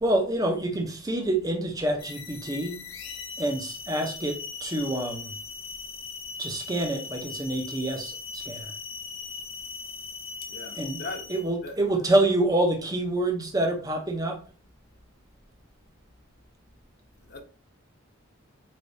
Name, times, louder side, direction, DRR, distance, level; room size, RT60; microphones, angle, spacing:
voice 1, 0.0-2.8 3.4-5.3 6.4-8.7 10.8-11.0 11.3-14.4, right 1 dB, 20° right, 0.6 m, -27 dB
sound 1, 2.0-11.5, left 5 dB, 85° left, 0.7 m, -39 dB
voice 2, 10.5-11.3 11.6-11.8 17.2-17.4, left 2 dB, 50° left, 0.8 m, -39 dB
4.3 x 3.4 x 2.6 m
head